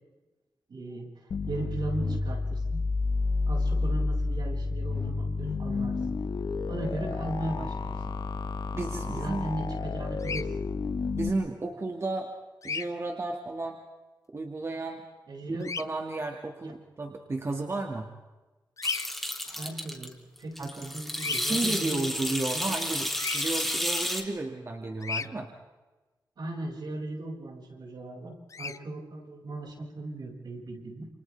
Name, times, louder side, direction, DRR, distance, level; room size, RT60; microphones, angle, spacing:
voice 1, 0.7-2.8 3.5-6.0 6.7-8.0 9.0-10.7 15.3-15.7 16.6-16.7 19.4-20.1 20.4-22.0 22.5-22.6 26.4-31.1, right 2 dB, 70° right, 0 dB, 6.7 m, -37 dB
sound 1, 1.3-11.3, left 3 dB, 70° left, 1.6 m, -30 dB
voice 2, 8.7-9.5 11.1-12.3 12.6-13.8 14.3-15.0 15.4-18.1 20.6-20.9 21.4-25.5, right 2 dB, 35° right, 2 dB, 2.3 m, -33 dB
Bird vocalization bird call bird song, 10.2-10.4 12.6-12.9 15.6-15.8 18.8-19.1 21.1-21.4 23.2-23.4 25.0-25.3 28.5-28.8, left 5 dB, 45° left, 0.8 m, -33 dB
sound 2, 18.8-20.1 20.4-24.2, equal, ahead, 3.1 m, -31 dB
30.0 x 28.5 x 3.6 m, 1.2 s
wide cardioid pair, 110°, 8 cm